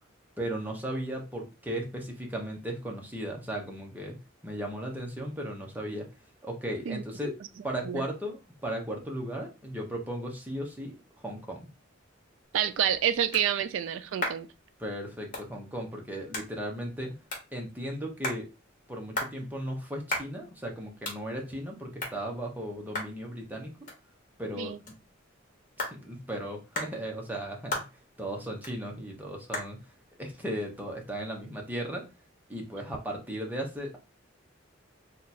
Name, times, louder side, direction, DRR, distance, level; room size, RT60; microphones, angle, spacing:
voice 1, 0.4-4.2 4.4-6.1 6.4-7.3 7.6-11.0 11.2-11.7 14.8-17.2 17.5-18.5 18.9-23.7 24.4-25.0 25.8-27.8 28.2-29.8 30.2-32.0 32.5-34.0, right 1 dB, 10° right, 0.7 m, -36 dB
sound 1, 12.4-31.7, left 2 dB, 40° left, 1.2 m, -41 dB
voice 2, 12.5-14.5 24.6-24.8, right 9 dB, 70° right, 0.3 m, -28 dB
2.8 x 2.3 x 4.1 m
head